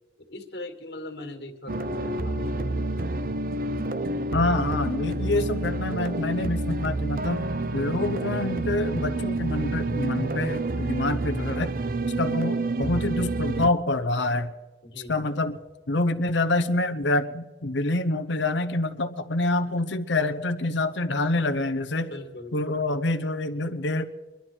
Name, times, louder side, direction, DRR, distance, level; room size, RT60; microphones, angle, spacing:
voice 1, 0.2-2.9 14.8-15.3 22.1-22.6, left 2 dB, 65° left, 5 dB, 2.0 m, -40 dB
sound 1, 1.7-13.7, right 2 dB, 50° right, 0.6 m, -28 dB
voice 2, 4.3-7.4 7.7-11.7 12.2-14.5 15.1-15.6 15.9-22.1 22.5-24.0, left 2 dB, 85° left, 8 dB, 0.9 m, -26 dB
24.0 x 11.5 x 4.5 m, 1.2 s
head